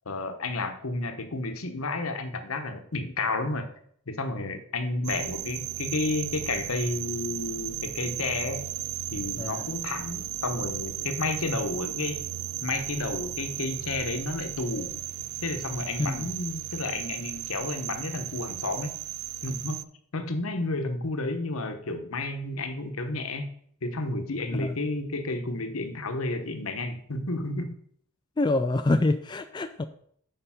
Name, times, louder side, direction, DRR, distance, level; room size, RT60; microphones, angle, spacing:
voice 1, 0.1-3.7 4.1-8.6 9.1-12.2 12.6-14.9 15.4-18.9 19.4-19.8 20.1-23.5 23.8-27.7, left 2 dB, 80° left, 7 dB, 1.0 m, -31 dB
sound 1, 5.0-19.8, right 14 dB, 80° right, 0.3 m, -35 dB
voice 2, 28.4-29.8, left 2 dB, 20° left, 8 dB, 0.3 m, -26 dB
6.8 x 5.2 x 5.7 m, 0.63 s
head